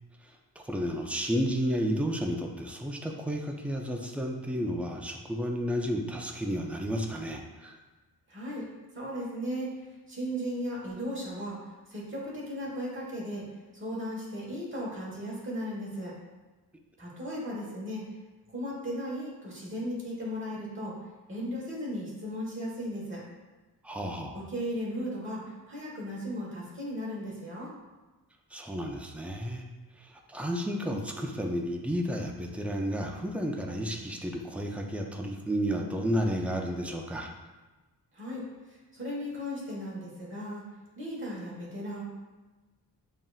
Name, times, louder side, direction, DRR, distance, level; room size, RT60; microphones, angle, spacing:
voice 1, 0.6-7.8 23.8-24.4 28.5-29.6 30.0-37.3, equal, 5° right, 2 dB, 0.3 m, -32 dB
voice 2, 8.3-8.7 8.9-9.7 10.1-13.4 13.7-16.1 17.0-18.1 18.5-20.9 21.3-23.2 24.3-27.7 38.1-40.6 40.9-42.0, equal, 30° right, -5 dB, 1.3 m, -36 dB
7.2 x 2.6 x 2.3 m, 1.2 s
wide cardioid pair, 140°, 38 cm